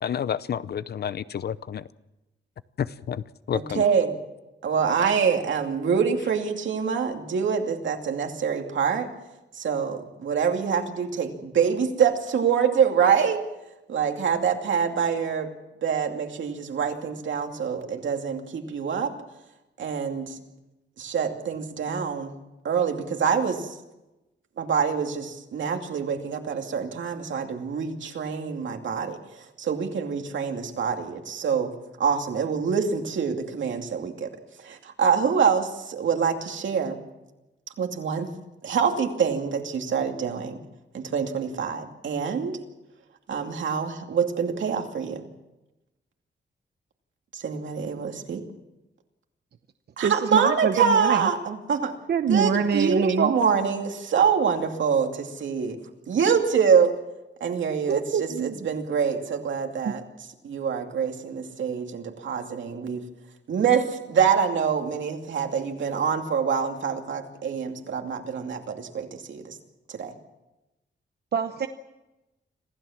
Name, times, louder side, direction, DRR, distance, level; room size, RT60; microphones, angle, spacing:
voice 1, 0.0-1.8 2.8-3.8, left 8 dB, 55° left, 16 dB, 0.6 m, -30 dB
voice 2, 3.7-4.2 4.6-9.1 9.5-13.4 13.9-15.5 15.8-19.1 19.8-20.4 21.0-22.4 22.6-23.8 24.6-34.3 34.6-37.0 37.8-38.3 38.6-40.6 40.9-42.6 43.3-45.2 47.3-48.4 50.0-51.9 52.3-55.8 56.1-56.9 57.4-60.0 60.4-63.0 63.5-69.6 69.9-70.1, right 6 dB, 80° right, 3 dB, 2.6 m, -25 dB
voice 3, 50.0-51.2 52.1-53.3 57.9-58.6 59.8-59.9 71.3-71.7, right 6 dB, 60° right, 8 dB, 0.9 m, -25 dB
26.0 x 16.0 x 7.3 m, 0.99 s
wide cardioid pair, 165°, 19 cm